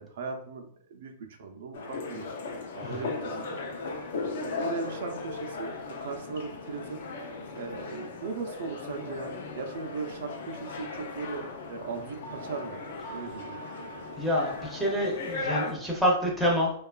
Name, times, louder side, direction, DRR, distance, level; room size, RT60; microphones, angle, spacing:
voice 1, 0.0-2.2 2.7-3.9 4.3-7.0 7.5-12.8 13.1-13.6, right 4 dB, 65° right, 4 dB, 0.4 m, -38 dB
sound 1, 1.7-15.7, left 3 dB, 65° left, 0.5 m, -37 dB
voice 2, 14.2-16.7, equal, ahead, -4 dB, 0.5 m, -27 dB
2.8 x 2.3 x 2.3 m, 0.64 s
hypercardioid pair, 155°, 0 cm